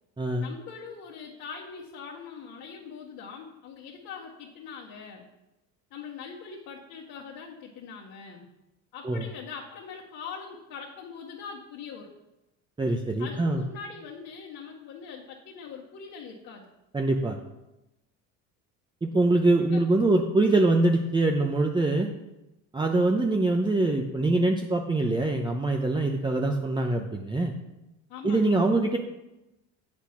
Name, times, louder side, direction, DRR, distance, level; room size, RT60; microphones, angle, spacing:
voice 1, 0.4-5.3 5.9-8.5 8.9-12.1 13.2-16.7 19.7-19.8 28.1-28.6, left 6 dB, 60° left, -5 dB, 1.8 m, -42 dB
voice 2, 12.8-13.6 16.9-17.4 19.0-22.1 22.7-27.5 28.2-29.0, right 2 dB, 15° right, 2 dB, 0.7 m, -24 dB
8.2 x 6.1 x 5.9 m, 0.96 s
supercardioid pair, 100°, 35 cm